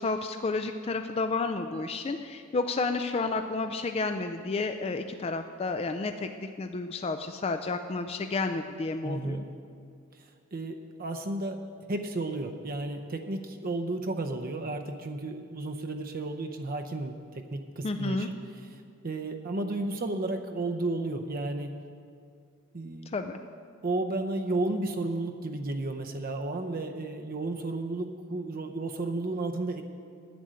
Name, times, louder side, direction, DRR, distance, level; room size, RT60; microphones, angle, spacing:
voice 1, 0.0-9.4 17.8-18.3 23.1-23.4, left 3 dB, 30° left, 7 dB, 0.4 m, -31 dB
voice 2, 9.0-9.4 10.1-11.6 11.9-21.7 22.7-23.2 23.8-29.8, right 2 dB, 45° right, 4 dB, 0.6 m, -33 dB
10.0 x 9.3 x 7.6 m, 2.3 s
head